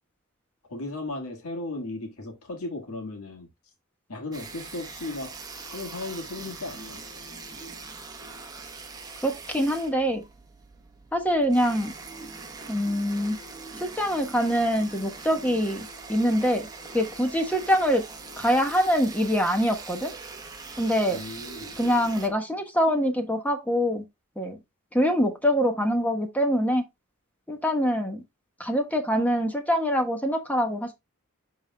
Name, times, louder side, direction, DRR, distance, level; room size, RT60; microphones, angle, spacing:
voice 1, 0.7-3.5 4.1-5.3 5.7-7.0 21.1-21.8, left 2 dB, 80° left, 1.8 m, -36 dB
sound 1, 4.3-22.3, right 4 dB, 15° right, 1.0 m, -42 dB
voice 2, 9.2-10.2 11.1-11.9 12.7-13.4 13.8-16.7 16.9-18.0 18.4-20.1 20.8-21.2 21.8-24.0 24.4-24.6 24.9-26.8 27.5-28.2 28.6-30.9, equal, 5° left, 1.1 m, -24 dB
11.0 x 3.8 x 2.2 m
head